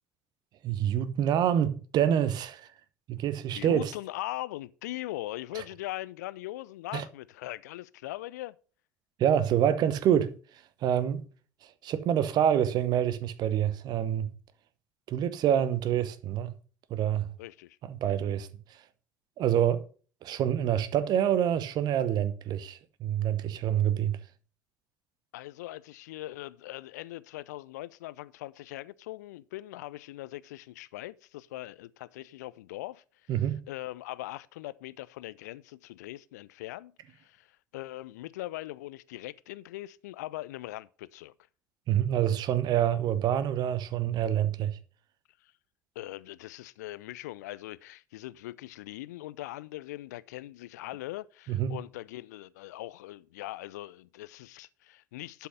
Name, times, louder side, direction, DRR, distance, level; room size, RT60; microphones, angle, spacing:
voice 1, 0.6-2.7 3.1-3.9 5.5-5.6 6.9-7.0 9.2-11.2 11.6-14.3 15.1-16.5 16.9-17.3 17.8-18.8 19.4-19.8 20.2-24.2 33.3-33.6 41.9-44.8 51.5-51.8, right 10 dB, 45° right, 1.0 m, -27 dB
voice 2, 3.5-8.6 17.4-17.8 25.3-33.3 33.7-41.3 45.4-45.5 46.0-55.5, left 16 dB, 65° left, 0.5 m, -41 dB
11.5 x 5.7 x 5.3 m
figure-of-eight pair, 65°, 10 cm